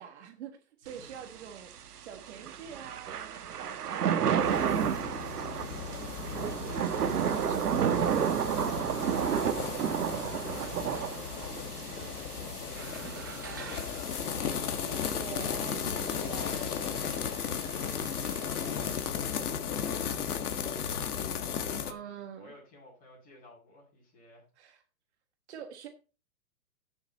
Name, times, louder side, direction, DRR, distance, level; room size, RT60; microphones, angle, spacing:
voice 1, 0.0-1.7 2.0-5.4 5.7-8.5 10.5-10.7 15.1-17.1 17.6-17.9 21.9-22.5 24.6-24.8 25.5-25.9, right 8 dB, 45° right, 1.6 m, -46 dB
Thunder / Rain, 0.9-19.1, right 8 dB, 85° right, 1.5 m, -33 dB
sound 1, 4.4-21.9, left 8 dB, 75° left, 1.7 m, -35 dB
voice 2, 9.2-15.2 17.7-18.2 18.8-24.4, left 1 dB, 20° left, 6.9 m, -54 dB
sound 2, 12.7-15.3, right 7 dB, 15° right, 0.4 m, -47 dB
13.5 x 7.2 x 4.2 m
hypercardioid pair, 160°, 45 cm